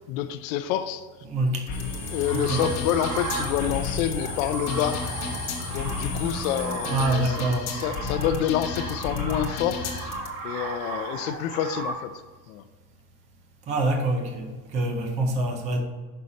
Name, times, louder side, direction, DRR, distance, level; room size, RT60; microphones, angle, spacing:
voice 1, 0.1-1.1 2.1-5.1 5.7-9.8 10.4-12.2 12.5-12.6, left 10 dB, 60° left, 0.5 m, -28 dB
voice 2, 1.3-1.7 2.3-2.7 6.9-7.7 13.7-15.8, right 2 dB, 15° right, 0.4 m, -26 dB
sound 1, 1.7-10.3, left 5 dB, 35° left, 1.0 m, -33 dB
sound 2, 1.7-7.0, left 3 dB, 5° left, 1.4 m, -35 dB
sound 3, 2.2-11.9, right 4 dB, 70° right, 1.9 m, -36 dB
6.3 x 5.6 x 4.0 m
supercardioid pair, 175°, 47 cm